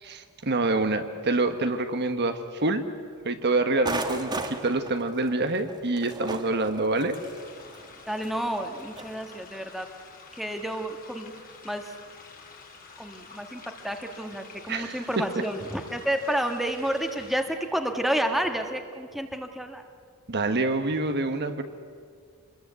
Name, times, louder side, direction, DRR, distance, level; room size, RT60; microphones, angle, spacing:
voice 1, 0.0-2.8 3.2-7.2 14.7-15.0 20.3-21.6, right 2 dB, 50° right, 8 dB, 1.4 m, -26 dB
sound 1, 3.8-9.2, right 2 dB, 20° right, 1.6 m, -37 dB
sound 2, 7.1-17.4, left 4 dB, 40° left, 3.2 m, -49 dB
voice 2, 8.1-9.9 10.3-11.3 11.6-11.9 13.0-19.8, right 1 dB, ahead, 5 dB, 1.6 m, -30 dB
27.0 x 21.0 x 8.3 m, 2.1 s
head